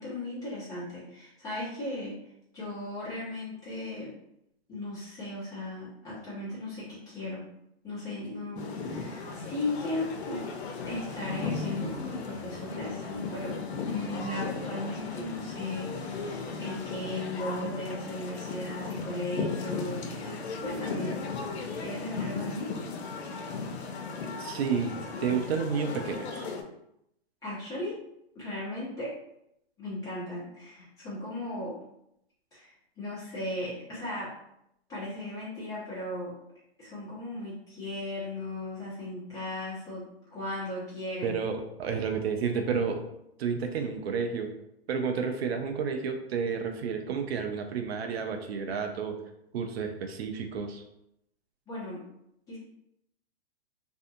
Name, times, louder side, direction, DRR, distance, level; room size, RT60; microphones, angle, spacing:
voice 1, 0.0-2.2 2.5-4.1 4.7-7.4 7.8-10.4 10.9-21.1 21.8-22.7 27.4-28.0 28.3-29.1 29.8-31.7 32.5-32.7 33.0-34.3 34.9-36.3 36.8-40.0 40.3-41.4 51.7-52.0 52.5-52.6, left 1 dB, 10° left, -9 dB, 1.0 m, -36 dB
sound 1, 8.6-26.6, left 4 dB, 80° left, 0.6 m, -36 dB
voice 2, 24.4-24.9 25.2-26.5 41.2-43.0 43.4-44.5 44.9-49.1 49.5-50.8, right 6 dB, 75° right, 5 dB, 0.5 m, -31 dB
2.6 x 2.2 x 2.6 m, 0.79 s
hypercardioid pair, 150°, 32 cm